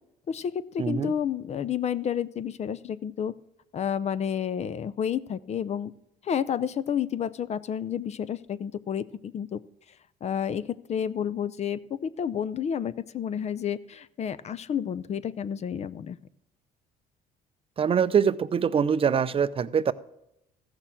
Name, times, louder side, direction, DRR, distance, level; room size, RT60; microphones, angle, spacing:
voice 1, 0.3-3.3 3.7-5.9 6.2-9.6 10.2-16.2, left 8 dB, 40° left, 16 dB, 0.5 m, -30 dB
voice 2, 0.8-1.1 17.8-19.9, right 7 dB, 35° right, 15 dB, 0.5 m, -24 dB
14.5 x 6.6 x 7.4 m, 0.83 s
cardioid pair, 110°, 17 cm